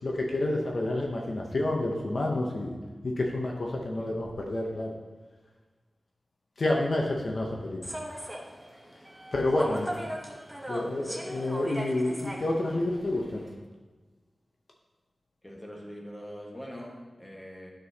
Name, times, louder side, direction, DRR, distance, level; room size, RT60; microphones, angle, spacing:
voice 1, 0.0-2.7 3.0-4.9 6.6-7.8 9.3-9.9 10.7-13.5, left 2 dB, 60° left, 0 dB, 0.8 m, -29 dB
Human voice / Subway metro underground, 7.8-13.5, equal, 5° right, 0.9 m, -39 dB
voice 2, 9.6-9.9 15.4-17.7, equal, 15° left, -2 dB, 1.4 m, -43 dB
9.6 x 6.2 x 2.8 m, 1.3 s
wide cardioid pair, 95°, 0 cm